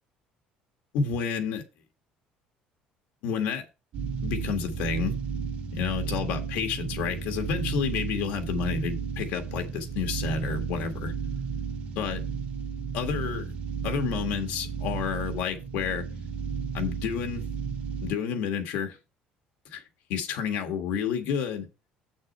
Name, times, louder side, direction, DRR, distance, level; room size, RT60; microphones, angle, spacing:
voice 1, 0.9-1.6 3.2-3.6 4.2-5.1 5.7-11.1 11.9-12.2 12.9-13.5 13.8-16.1 16.7-17.5 18.0-19.0 19.6-19.8 20.1-21.7, left 6 dB, 75° left, 1.7 m, -30 dB
sound 1, 3.9-18.1, right 6 dB, 55° right, 1.8 m, -33 dB
7.7 x 6.3 x 4.2 m
cardioid pair, 170°, 3 cm